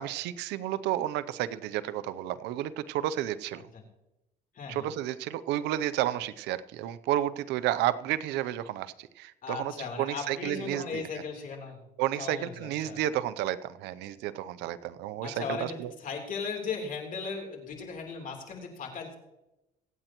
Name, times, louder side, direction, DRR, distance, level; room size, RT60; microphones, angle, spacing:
voice 1, 0.0-3.6 4.7-9.7 10.0-11.1 12.0-15.9, right 13 dB, 85° right, 15 dB, 0.6 m, -31 dB
voice 2, 4.5-4.9 9.4-11.8 12.2-13.0 15.2-19.1, left 5 dB, 55° left, 2 dB, 3.4 m, -37 dB
24.0 x 8.9 x 3.0 m, 0.92 s
cardioid pair, 110°, 17 cm